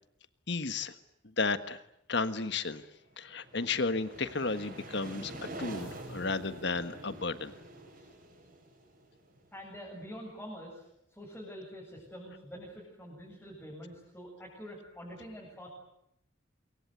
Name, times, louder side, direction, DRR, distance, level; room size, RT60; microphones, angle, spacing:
voice 1, 0.5-0.9 1.2-1.8 2.1-2.9 3.2-7.5, left 3 dB, 60° left, 11 dB, 1.5 m, -33 dB
sound 1, 3.1-9.8, right 1 dB, 45° right, 7.4 m, -46 dB
voice 2, 9.5-10.8 11.1-15.7, equal, 10° left, -5 dB, 8.0 m, -46 dB
26.0 x 24.0 x 9.4 m, 0.76 s
head